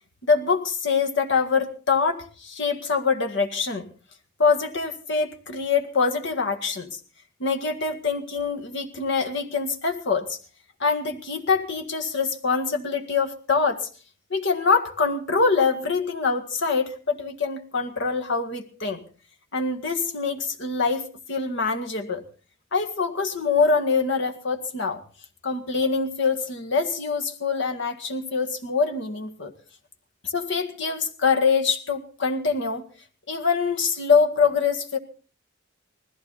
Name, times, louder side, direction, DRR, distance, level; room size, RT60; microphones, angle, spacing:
voice 1, 0.3-3.9 4.4-7.0 7.4-10.4 10.8-13.9 14.3-19.0 19.5-22.2 22.7-25.0 25.4-29.5 30.2-32.9 33.3-35.0, left 5 dB, 60° left, 4 dB, 1.8 m, -24 dB
20.0 x 14.5 x 4.1 m, 0.37 s
head